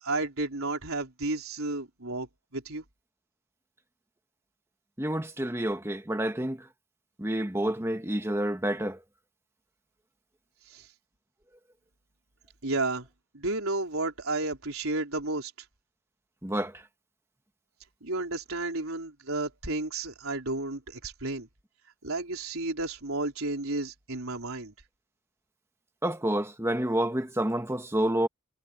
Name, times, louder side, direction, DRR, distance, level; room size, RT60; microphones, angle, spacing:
voice 1, 0.0-2.3 2.5-2.8 10.7-10.9 12.6-13.1 13.3-15.5 18.0-21.5 22.0-24.7, right 2 dB, 85° right, 4.2 m, -32 dB
voice 2, 5.0-6.6 7.2-9.0 16.4-16.7 26.0-28.3, right 1 dB, 10° right, 1.6 m, -28 dB
head